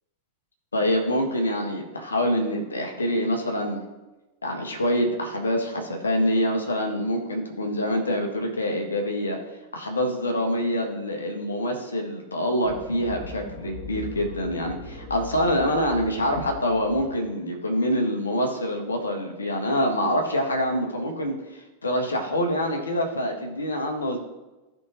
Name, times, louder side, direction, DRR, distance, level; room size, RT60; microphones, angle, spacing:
voice 1, 0.7-3.8 4.4-9.4 9.7-24.2, equal, 75° left, 2 dB, 1.6 m, -26 dB
sound 1, 12.6-17.1, left 3 dB, 40° left, 2.3 m, -39 dB
15.0 x 5.3 x 3.0 m, 1.1 s
figure-of-eight pair, 90°, 0 cm